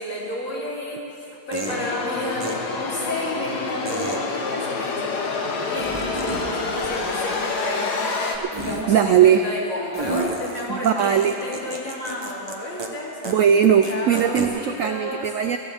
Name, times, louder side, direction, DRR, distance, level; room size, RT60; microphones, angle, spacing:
voice 1, 0.0-13.2 13.9-15.3, left 1 dB, 45° left, -6 dB, 3.6 m, -31 dB
sound 1, 0.6-0.7 1.5-1.8 2.4-2.5 3.9-4.2 5.8-6.5 6.7-7.6 8.5-8.8 9.9-12.5 12.8-12.9 13.2-13.3 13.6-14.5, right 3 dB, 20° right, 0.9 m, -31 dB
sound 2, 1.7-8.4, left 4 dB, 65° left, 1.7 m, -27 dB
voice 2, 8.9-9.4 10.7-11.3 13.2-15.6, right 8 dB, 85° right, 7 dB, 0.7 m, -19 dB
23.0 x 15.0 x 3.5 m, 2.7 s
omnidirectional pair, 2.0 m